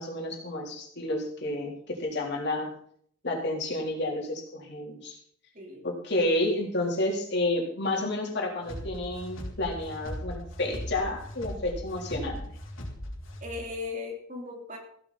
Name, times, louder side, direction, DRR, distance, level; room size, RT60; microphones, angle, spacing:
voice 1, 0.0-2.7 3.2-5.2 5.8-12.4, left 1 dB, 60° left, -1 dB, 3.8 m, -30 dB
voice 2, 5.5-5.9 13.4-14.8, left 3 dB, 40° right, 0 dB, 3.7 m, -37 dB
sound 1, 8.6-13.7, equal, 80° left, 3.3 m, -39 dB
16.0 x 12.0 x 4.3 m, 0.62 s
head